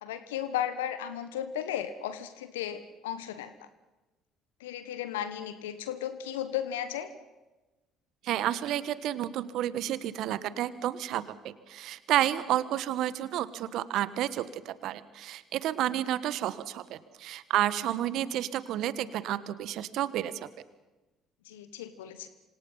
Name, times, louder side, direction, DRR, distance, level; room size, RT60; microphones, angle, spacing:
voice 1, 0.0-3.5 4.6-7.1 21.5-22.3, left 10 dB, 80° left, 12 dB, 1.3 m, -35 dB
voice 2, 8.2-20.5, right 12 dB, 65° right, 15 dB, 1.4 m, -31 dB
27.5 x 26.0 x 5.7 m, 1.1 s
hypercardioid pair, 55°, 0 cm